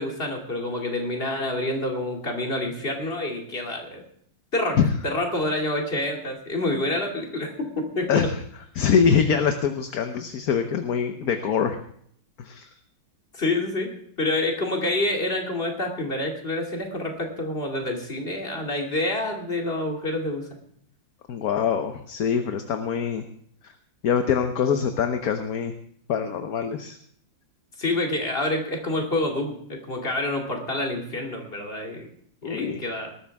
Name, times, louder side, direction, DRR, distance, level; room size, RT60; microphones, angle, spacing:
voice 1, 0.0-4.0 4.5-4.8 5.0-8.3 13.3-13.9 14.2-20.5 27.8-32.1 32.4-33.1, left 2 dB, 30° left, 1 dB, 2.7 m, -27 dB
voice 2, 8.7-11.8 12.4-12.7 21.3-23.2 24.0-25.7 26.1-26.9 32.4-32.8, left 7 dB, 60° left, 7 dB, 1.3 m, -24 dB
19.5 x 13.0 x 3.5 m, 0.64 s
omnidirectional pair, 2.0 m